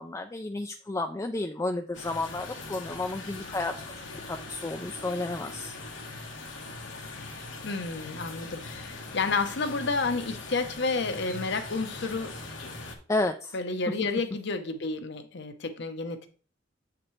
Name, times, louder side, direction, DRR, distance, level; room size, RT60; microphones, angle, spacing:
voice 1, 0.0-3.7 4.3-5.7 13.1-13.5, left 2 dB, 15° left, 0.4 m, -31 dB
sound 1, 1.9-13.0, left 3 dB, 85° left, 1.4 m, -41 dB
voice 2, 7.6-12.4 13.5-16.3, left 3 dB, 65° left, 0.9 m, -30 dB
7.7 x 5.9 x 3.2 m
head